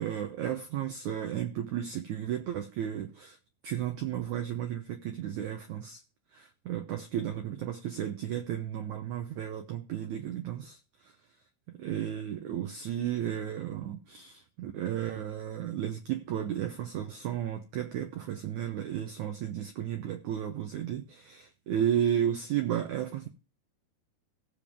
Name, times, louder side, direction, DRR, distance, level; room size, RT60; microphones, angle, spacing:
voice 1, 0.0-3.4 3.6-6.0 6.3-10.8 11.0-11.1 11.7-23.3, right 10 dB, 85° right, 1.7 m, -33 dB
17.0 x 7.1 x 3.5 m
omnidirectional pair, 4.7 m